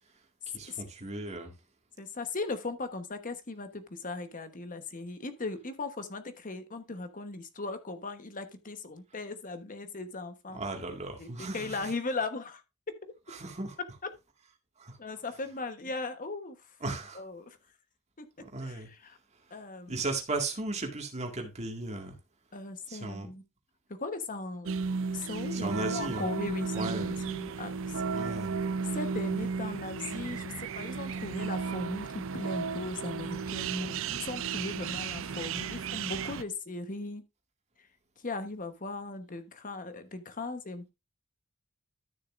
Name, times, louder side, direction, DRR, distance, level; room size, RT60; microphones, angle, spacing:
voice 1, 0.5-1.5 10.5-11.9 13.3-13.8 14.8-15.0 16.8-17.2 18.4-18.9 19.9-22.2 22.9-23.3 25.5-26.3 26.7-27.1 28.1-28.6, right 2 dB, 30° right, 2.0 m, -36 dB
voice 2, 2.0-10.6 11.2-12.6 14.0-14.1 15.0-16.6 17.1-17.6 18.2-18.3 18.6-19.2 19.5-20.0 22.5-23.4 24.0-24.7 25.1-28.3 28.9-37.2 38.2-40.9, left 3 dB, 40° left, 1.1 m, -38 dB
sound 1, 24.7-36.4, right 5 dB, 65° right, 0.5 m, -34 dB
13.0 x 6.6 x 2.5 m
head